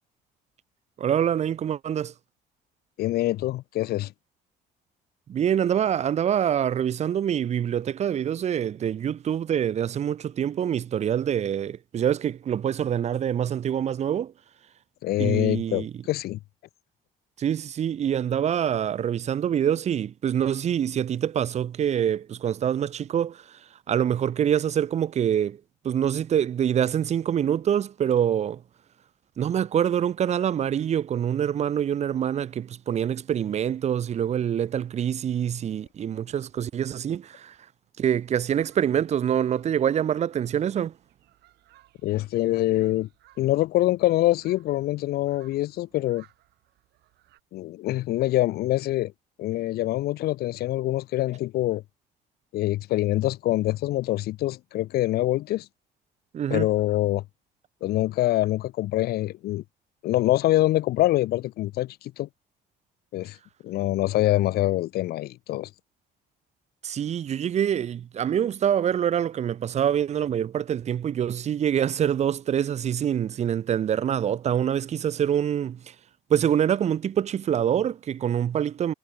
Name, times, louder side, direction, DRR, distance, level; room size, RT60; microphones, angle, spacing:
voice 1, 1.0-2.1 5.3-14.3 15.2-16.0 17.4-23.6 23.9-28.6 29.4-37.6 38.0-40.9 56.3-56.7 66.8-75.9 76.3-78.9, right 9 dB, 40° right, 0.7 m, -25 dB
voice 2, 3.0-4.1 15.0-16.4 42.0-43.1 43.4-46.2 47.5-49.1 49.4-51.8 52.5-55.7 56.5-57.2 57.8-59.6 60.0-62.3 63.1-63.4 63.6-65.7, left 16 dB, 65° left, 0.6 m, -25 dB
sound 1, 38.2-47.4, right 16 dB, 80° right, 6.5 m, -61 dB
cardioid pair, 110°, 17 cm